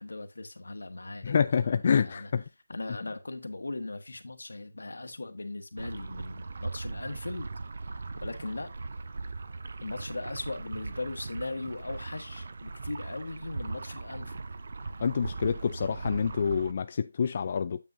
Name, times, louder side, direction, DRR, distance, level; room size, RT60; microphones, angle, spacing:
voice 1, 0.0-2.3 2.7-7.5 7.9-8.9 9.8-14.5, left 2 dB, 80° left, 1.3 m, -39 dB
voice 2, 1.2-2.4 15.0-17.8, left 6 dB, 35° left, 0.3 m, -27 dB
sound 1, 5.8-16.7, right 3 dB, 50° right, 0.7 m, -39 dB
8.9 x 6.9 x 2.6 m
figure-of-eight pair, 170°, 0 cm